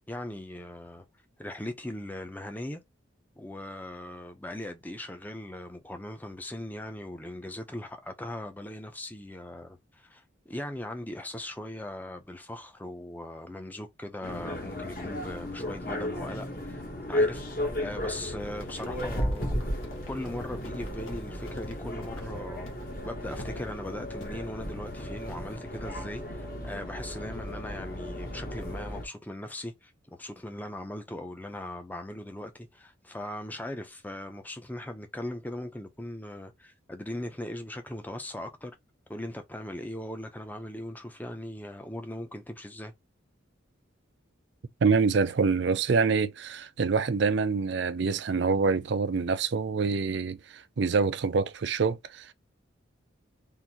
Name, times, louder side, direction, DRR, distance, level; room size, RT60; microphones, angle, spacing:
voice 1, 0.1-1.0 1.4-2.8 3.4-16.8 17.1-19.5 20.1-22.7 23.0-38.8 39.1-42.9, left 1 dB, 10° left, 0.5 m, -39 dB
sound 1, 14.2-29.1, left 1 dB, 45° left, 1.1 m, -34 dB
Run, 18.4-22.3 22.7-22.9 23.4-23.7 24.2-24.4, left 1 dB, 90° left, 1.2 m, -50 dB
voice 2, 44.8-52.3, right 4 dB, 60° right, 0.4 m, -26 dB
3.7 x 2.6 x 2.8 m
head